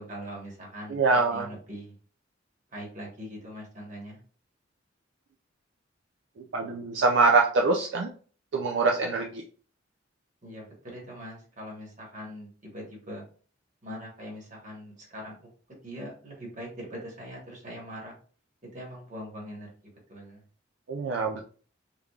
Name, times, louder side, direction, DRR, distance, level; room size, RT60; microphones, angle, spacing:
voice 1, 0.0-1.9 2.7-4.2 10.4-13.2 13.8-15.5 15.8-18.1 18.7-19.7 20.1-20.4, equal, 40° right, -1 dB, 1.3 m, -42 dB
voice 2, 0.9-1.5 6.5-8.1 8.5-9.4 20.9-21.4, right 3 dB, 70° right, 2 dB, 0.4 m, -24 dB
3.4 x 3.3 x 2.3 m, 0.43 s
head